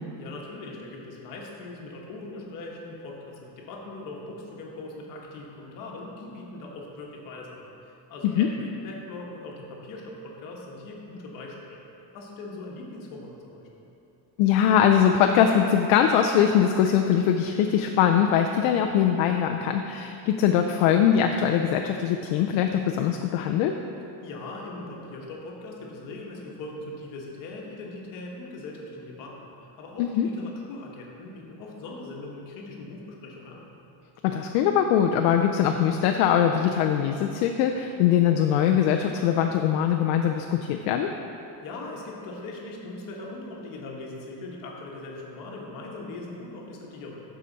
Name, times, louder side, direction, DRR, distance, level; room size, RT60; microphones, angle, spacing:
voice 1, 0.2-11.8 12.1-13.7 24.2-29.5 29.8-33.6 41.6-47.2, left 2 dB, 40° left, -2 dB, 1.3 m, -40 dB
voice 2, 14.4-23.7 30.0-30.3 34.2-41.1, left 9 dB, 65° left, 4 dB, 0.5 m, -22 dB
12.0 x 5.0 x 4.0 m, 2.8 s
cardioid pair, 180°, 49 cm